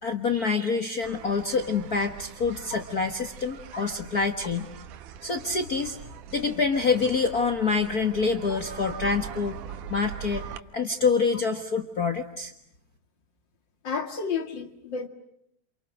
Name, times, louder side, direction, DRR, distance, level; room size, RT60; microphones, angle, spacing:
voice 1, 0.0-4.7 5.2-6.0 6.3-9.6 9.9-10.4 10.7-12.5, left 4 dB, 75° left, 6 dB, 0.8 m, -26 dB
sound 1, 1.0-10.6, right 9 dB, 70° right, 2.5 m, -42 dB
voice 2, 13.8-15.1, left 5 dB, 40° left, 7 dB, 2.2 m, -32 dB
28.5 x 28.5 x 6.4 m, 0.71 s
omnidirectional pair, 4.1 m